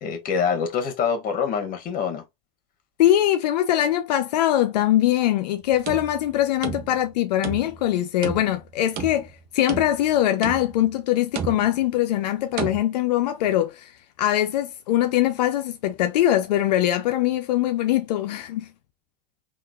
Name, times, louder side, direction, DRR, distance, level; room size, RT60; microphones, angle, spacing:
voice 1, 0.0-2.2, left 6 dB, 45° left, 1.2 m, -25 dB
voice 2, 3.0-13.9 14.2-18.7, left 13 dB, 90° left, 0.4 m, -22 dB
sound 1, 5.6-7.1 7.4-7.9 8.2-9.3 9.7-10.1 10.4-10.9 11.4-11.9 12.6-12.8, right 7 dB, 45° right, 0.8 m, -33 dB
3.7 x 2.4 x 2.3 m
supercardioid pair, 105°, 21 cm